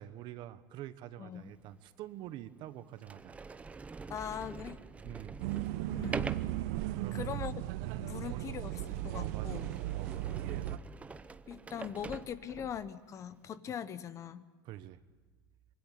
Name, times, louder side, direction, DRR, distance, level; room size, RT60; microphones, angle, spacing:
voice 1, 0.0-3.4 5.0-5.5 7.0-7.4 7.8-8.6 9.1-10.3 14.6-15.0, right 13 dB, 50° right, 13 dB, 1.2 m, -46 dB
Sliding door, 1.6-1.7 2.4-2.5 3.0-12.9, right 4 dB, 15° right, 0.7 m, -45 dB
voice 2, 4.1-4.8 5.9-6.2 7.1-7.5 8.0-9.7 11.5-14.4, left 8 dB, 30° left, 14 dB, 1.1 m, -41 dB
sound 1, 5.4-10.8, right 15 dB, 65° right, 0.9 m, -36 dB
25.0 x 23.0 x 8.4 m, 1.4 s
supercardioid pair, 140°, 10 cm